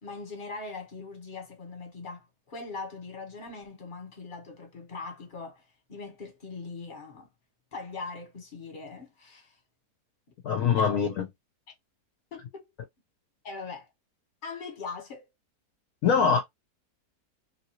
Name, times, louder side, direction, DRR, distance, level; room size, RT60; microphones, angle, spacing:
voice 1, 0.0-5.6 5.9-7.3 7.7-9.6 10.8-10.9 12.3-12.7 13.4-13.9 14.4-15.2, left 4 dB, 35° left, 1.3 m, -41 dB
voice 2, 10.4-11.3 16.0-16.4, left 6 dB, 65° left, 1.0 m, -23 dB
3.0 x 2.8 x 2.9 m
omnidirectional pair, 1.7 m